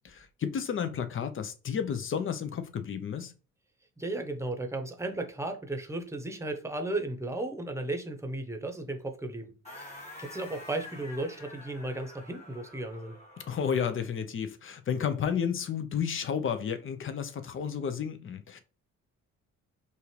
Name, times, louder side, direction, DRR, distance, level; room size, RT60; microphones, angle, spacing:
voice 1, 0.0-3.3 13.5-18.6, left 7 dB, 45° left, 0.7 m, -32 dB
voice 2, 4.0-13.2, right 2 dB, 10° right, 1.0 m, -35 dB
sound 1, 9.6-14.0, left 2 dB, 20° left, 2.0 m, -48 dB
5.5 x 2.5 x 3.3 m
cardioid pair, 90°, 30 cm